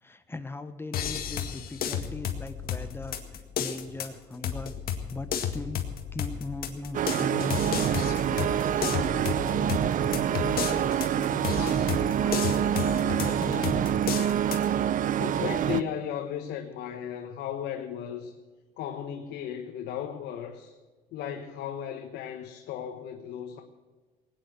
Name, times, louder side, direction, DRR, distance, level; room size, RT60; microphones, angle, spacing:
voice 1, 0.0-4.8 5.1-7.9 8.3-13.8, left 3 dB, 15° left, 1.1 m, -39 dB
sound 1, 0.9-14.7, left 8 dB, 60° left, 1.9 m, -33 dB
sound 2, 6.9-15.8, right 10 dB, 50° right, 0.6 m, -26 dB
voice 2, 15.2-18.3 18.8-20.7 21.1-23.6, left 9 dB, 80° left, 1.3 m, -35 dB
19.5 x 9.6 x 6.5 m
cardioid pair, 110°, 17 cm